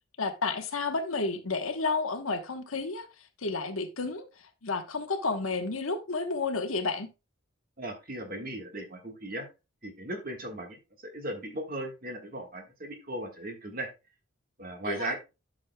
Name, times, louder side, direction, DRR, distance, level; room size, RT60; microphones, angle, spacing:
voice 1, 0.2-3.1 3.4-4.2 4.6-7.1 14.9-15.1, left 3 dB, 90° left, 1.1 m, -31 dB
voice 2, 7.8-9.5 9.8-13.9 14.6-15.2, right 1 dB, 45° right, 1.5 m, -37 dB
11.0 x 6.4 x 2.2 m
head